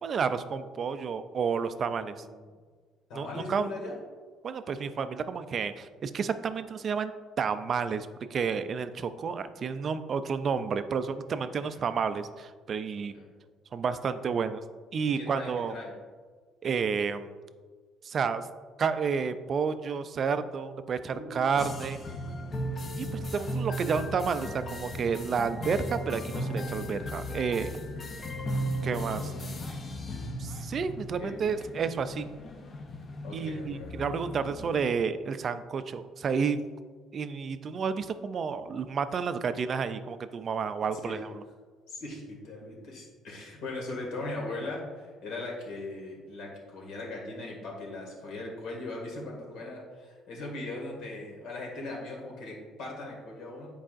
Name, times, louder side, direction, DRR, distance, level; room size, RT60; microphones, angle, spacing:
voice 1, 0.0-2.1 3.1-3.7 4.4-7.1 7.4-13.1 13.7-14.6 14.9-15.7 16.6-17.3 18.0-18.5 18.8-22.0 23.0-27.7 28.8-29.3 30.4-32.3 33.3-36.6 37.1-41.4, right 6 dB, 35° right, 11 dB, 0.3 m, -30 dB
voice 2, 3.1-4.0 11.4-11.8 13.1-13.4 15.1-15.9 21.1-21.5 23.5-23.7 25.7-25.8 27.8-28.4 31.2-31.5 33.2-34.1 41.0-41.2 41.9-53.7, left 2 dB, 70° left, -1 dB, 1.9 m, -39 dB
sound 1, 21.6-35.0, equal, 30° left, 0.5 m, -36 dB
9.9 x 4.7 x 2.5 m, 1.5 s
cardioid pair, 160°, 0 cm